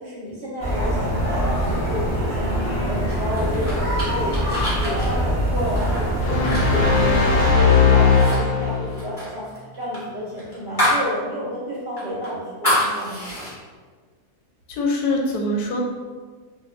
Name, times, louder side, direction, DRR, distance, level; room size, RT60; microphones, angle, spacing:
voice 1, 0.0-4.3 4.6-13.2, equal, 60° right, -6 dB, 0.7 m, -31 dB
sound 1, 0.6-7.5, equal, 20° right, 0.4 m, -24 dB
sound 2, 3.1-7.7 8.0-8.4 8.6-11.1 11.4-11.5 12.0-13.5, equal, 15° left, 0.8 m, -27 dB
sound 3, 6.2-9.0, left 5 dB, 70° left, 0.8 m, -18 dB
voice 2, 14.7-15.8, left 2 dB, 90° left, 0 dB, 1.1 m, -23 dB
2.6 x 2.2 x 3.0 m, 1.4 s
omnidirectional pair, 1.6 m